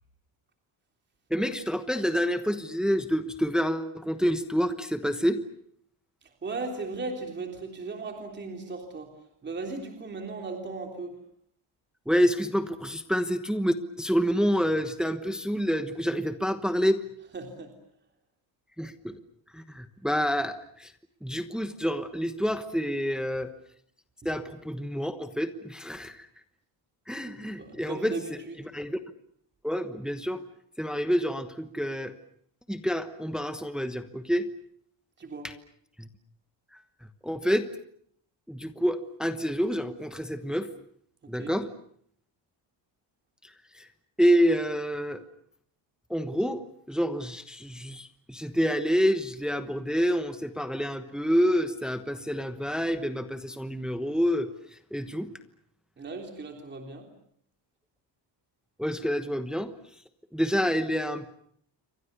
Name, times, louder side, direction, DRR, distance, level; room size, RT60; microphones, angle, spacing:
voice 1, 1.3-5.4 12.1-17.0 18.8-19.2 19.5-20.9 21.2-23.5 24.2-26.3 27.1-28.2 28.7-29.0 29.6-30.4 30.8-32.1 32.7-34.5 35.4-35.5 36.0-36.1 37.2-37.7 38.5-40.7 41.3-41.7 43.7-43.9 44.2-45.2 46.1-54.5 54.9-55.3 58.8-59.7 60.3-61.4, equal, ahead, 9 dB, 1.1 m, -28 dB
voice 2, 6.4-9.1 9.4-11.1 17.3-17.7 27.2-28.5 35.2-35.5 41.2-41.6 56.0-57.1, right 3 dB, 25° right, 3 dB, 3.4 m, -37 dB
29.0 x 24.5 x 6.8 m, 0.65 s
cardioid pair, 175°, 45 cm